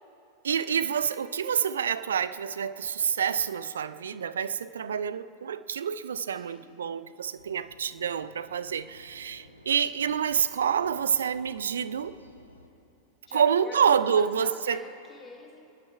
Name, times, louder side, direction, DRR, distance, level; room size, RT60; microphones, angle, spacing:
voice 1, 0.4-12.2 13.3-14.8, right 7 dB, 65° right, 15 dB, 0.5 m, -27 dB
voice 2, 6.3-6.8 13.3-15.7, left 3 dB, 20° left, 0 dB, 2.7 m, -46 dB
sound 1, 7.3-12.7, equal, 90° left, 1.0 m, -54 dB
28.0 x 10.5 x 4.7 m, 2.8 s
figure-of-eight pair, 90°, 0 cm